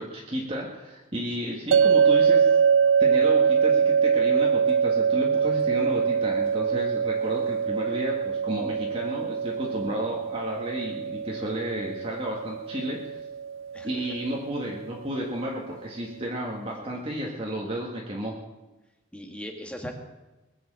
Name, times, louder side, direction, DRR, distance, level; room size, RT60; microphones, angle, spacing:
voice 1, 0.0-2.5 3.0-13.2 13.8-18.3, equal, 30° right, -2 dB, 1.8 m, -32 dB
sound 1, 1.7-14.8, right 6 dB, 85° right, 0.4 m, -24 dB
voice 2, 19.1-19.9, equal, 5° left, 3 dB, 1.8 m, -39 dB
21.0 x 7.8 x 7.5 m, 1.1 s
head